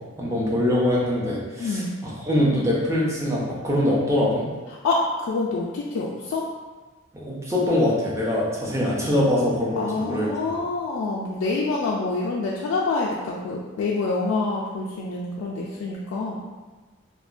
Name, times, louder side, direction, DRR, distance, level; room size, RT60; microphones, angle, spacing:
voice 1, 0.0-4.5 7.1-10.3, left 1 dB, 15° right, -5 dB, 0.4 m, -23 dB
voice 2, 1.6-2.0 4.8-6.5 9.8-16.4, left 3 dB, 90° left, -4 dB, 0.3 m, -26 dB
2.8 x 2.1 x 2.4 m, 1.3 s
head